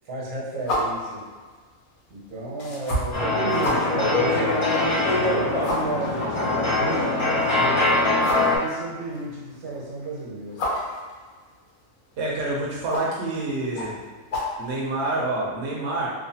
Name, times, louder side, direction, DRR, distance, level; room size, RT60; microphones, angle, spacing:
voice 1, 0.0-1.2 2.1-4.6 4.9-8.0 8.5-10.7, right 2 dB, 80° right, -6 dB, 1.4 m, -33 dB
sound 1, 0.6-15.3, left 1 dB, 70° left, 1.1 m, -34 dB
sound 2, 3.1-8.6, left 2 dB, 45° left, 0.4 m, -22 dB
voice 2, 12.2-14.0 14.6-16.1, right 2 dB, 60° right, -4 dB, 0.8 m, -27 dB
3.0 x 2.1 x 2.7 m, 1.5 s
omnidirectional pair, 1.5 m